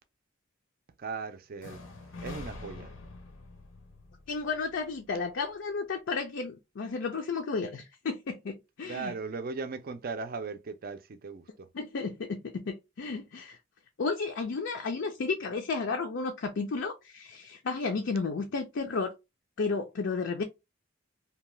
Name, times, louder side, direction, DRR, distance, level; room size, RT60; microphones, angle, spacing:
voice 1, 1.0-1.8 2.2-2.9 8.8-11.7, right 4 dB, 45° right, 0.4 m, -38 dB
sound 1, 1.6-5.5, left 3 dB, 90° left, 0.8 m, -46 dB
voice 2, 4.3-9.1 11.7-13.6 14.0-19.1 19.6-20.4, left 4 dB, 60° left, 0.4 m, -33 dB
2.8 x 2.2 x 3.1 m
head